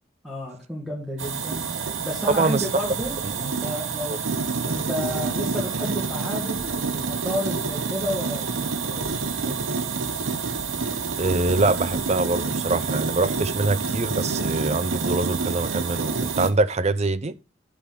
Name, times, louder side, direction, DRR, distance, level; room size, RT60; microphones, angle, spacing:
voice 1, 0.2-4.2 4.6-9.8, equal, ahead, 1.7 m, -32 dB
sound 1, 1.2-16.5, right 4 dB, 85° right, 1.0 m, -28 dB
voice 2, 2.3-2.6 11.2-17.3, right 3 dB, 35° right, 0.6 m, -24 dB
sound 2, 3.0-3.9 6.6-7.4 8.3-9.7 10.6-12.8, left 1 dB, 20° left, 1.5 m, -49 dB
11.5 x 3.8 x 5.9 m
head